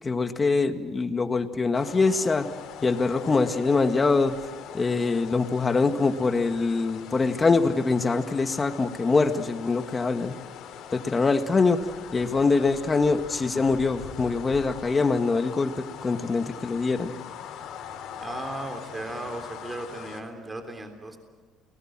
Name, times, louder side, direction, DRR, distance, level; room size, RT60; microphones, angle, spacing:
voice 1, 0.0-2.5 2.8-4.4 4.7-10.4 10.9-17.1, left 4 dB, 25° left, 7 dB, 1.8 m, -24 dB
sound 1, 1.7-20.2, left 8 dB, 70° left, 3.7 m, -42 dB
voice 2, 18.2-21.2, right 2 dB, 15° right, 6 dB, 3.5 m, -36 dB
30.0 x 19.5 x 7.6 m, 1.4 s
cardioid pair, 110°, 0 cm